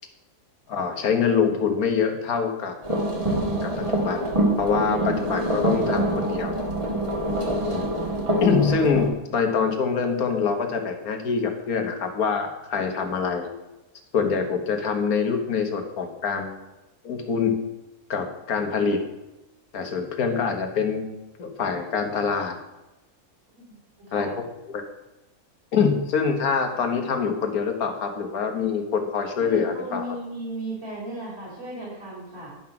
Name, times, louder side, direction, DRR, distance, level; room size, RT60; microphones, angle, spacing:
voice 1, 0.7-2.8 3.6-6.6 7.7-7.9 8.4-13.5 14.1-16.6 17.0-17.6 18.1-19.0 19.7-21.1 21.4-22.6 24.1-24.3 24.7-24.8 25.7-30.1, left 5 dB, 70° left, 4 dB, 1.7 m, -25 dB
sound 1, 2.8-9.1, right 1 dB, 20° right, 1.6 m, -25 dB
voice 2, 29.3-32.5, right 1 dB, 40° right, -4 dB, 3.6 m, -35 dB
11.0 x 5.7 x 5.8 m, 1.0 s
omnidirectional pair, 1.6 m